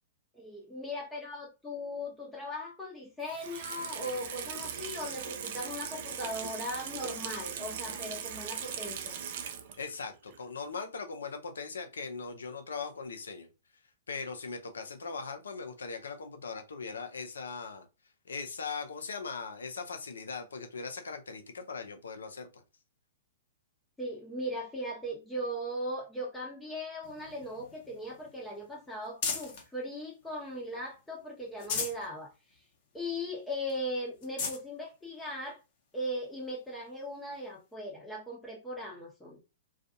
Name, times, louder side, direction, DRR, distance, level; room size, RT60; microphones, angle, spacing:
voice 1, 0.3-9.2 24.0-32.6 32.9-35.6 35.9-39.4, equal, 10° left, 0.8 m, -38 dB
Water tap faucet / Sink (filling or washing), 3.2-9.9 10.3-10.4, right 8 dB, 55° right, 0.4 m, -39 dB
voice 2, 9.8-13.5 14.1-17.9 18.3-22.6, left 4 dB, 75° left, 0.5 m, -40 dB
sound 1, 27.0-29.7 30.2-31.0 31.4-32.1 32.5-32.6 33.0-33.1 33.7-33.8 34.2-34.6 35.5-35.6 37.3-37.4, left 5 dB, 50° left, 0.8 m, -38 dB
2.5 x 2.4 x 2.6 m
figure-of-eight pair, 110°, 0 cm